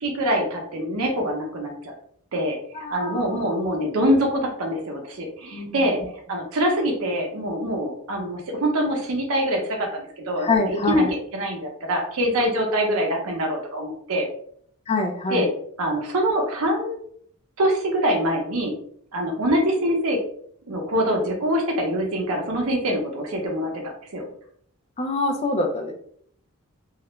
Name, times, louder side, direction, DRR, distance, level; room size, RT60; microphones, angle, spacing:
voice 1, 0.0-1.9 2.3-6.0 6.3-10.5 10.9-11.0 11.3-14.3 15.3-15.5 15.8-17.0 17.6-18.7 19.1-20.2 20.7-23.8 24.1-24.3, equal, 75° right, 1 dB, 0.6 m, -24 dB
voice 2, 2.7-3.6 5.5-5.8 10.4-11.1 14.9-15.5 25.0-25.9, left 3 dB, 30° left, 3 dB, 0.3 m, -25 dB
2.4 x 2.1 x 2.9 m, 0.64 s
head